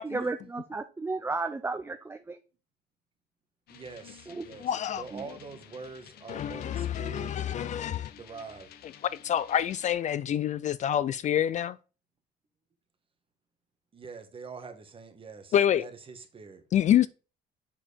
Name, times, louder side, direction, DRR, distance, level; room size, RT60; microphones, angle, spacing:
voice 1, 0.0-2.4 4.3-4.4 5.1-5.2, right 3 dB, 15° right, 0.5 m, -33 dB
sound 1, 3.7-9.9, left 10 dB, 65° left, 0.9 m, -52 dB
voice 2, 3.7-8.7 13.9-16.6, right 4 dB, 30° right, 1.5 m, -45 dB
voice 3, 4.6-5.0 6.3-8.1 9.2-11.8 15.5-15.9 16.7-17.1, left 10 dB, 45° left, 0.4 m, -27 dB
7.4 x 4.5 x 5.1 m
cardioid pair, 110°, 17 cm